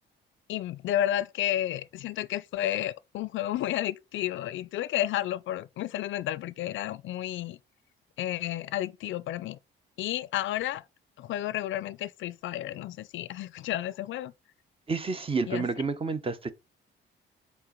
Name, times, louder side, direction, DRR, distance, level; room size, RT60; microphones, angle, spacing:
voice 1, 0.5-7.6 8.2-9.6 10.0-10.8 11.2-14.3 15.5-15.7, left 13 dB, 75° left, 0.5 m, -31 dB
voice 2, 14.9-16.5, right 4 dB, 30° right, 0.9 m, -29 dB
4.4 x 4.3 x 5.1 m
cardioid pair, 90°, 20 cm